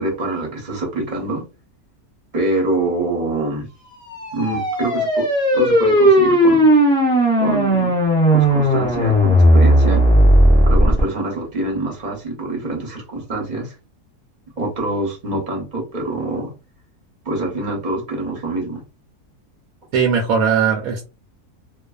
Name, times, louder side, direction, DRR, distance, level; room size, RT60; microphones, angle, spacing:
voice 1, 0.0-1.4 2.3-3.7 4.3-5.3 5.5-6.6 7.4-8.0 8.3-10.0 10.7-13.7 14.6-16.5 17.2-18.8, right 2 dB, 35° right, 0.8 m, -25 dB
sound 1, 4.1-11.0, equal, 5° left, 0.4 m, -15 dB
voice 2, 19.9-21.0, right 6 dB, 70° right, 1.0 m, -18 dB
2.5 x 2.3 x 2.3 m
omnidirectional pair, 1.7 m